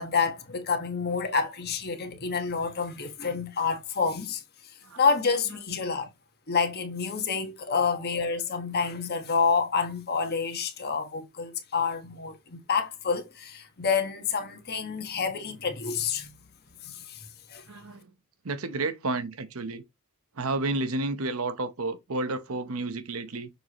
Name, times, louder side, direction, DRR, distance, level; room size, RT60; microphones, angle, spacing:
voice 1, 0.0-4.4 5.0-6.1 6.5-16.3 16.8-17.2 17.5-17.6, left 5 dB, 45° left, 1.3 m, -28 dB
voice 2, 17.7-18.1 18.4-19.8 20.4-23.5, right 2 dB, 70° right, 0.9 m, -31 dB
6.6 x 4.7 x 3.0 m
head